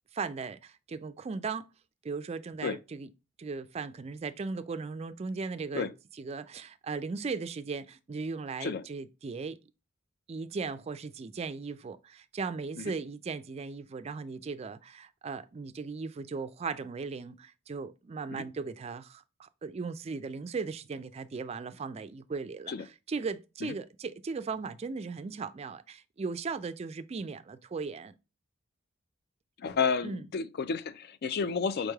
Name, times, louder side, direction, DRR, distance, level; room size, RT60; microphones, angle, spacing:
voice 1, 0.1-1.7 2.0-3.1 3.4-5.9 6.2-9.6 10.3-22.7 23.1-28.2 30.0-30.2, right 4 dB, 30° right, 0.3 m, -37 dB
voice 2, 29.6-31.9, left 5 dB, 50° left, 0.4 m, -31 dB
5.0 x 3.2 x 2.3 m
head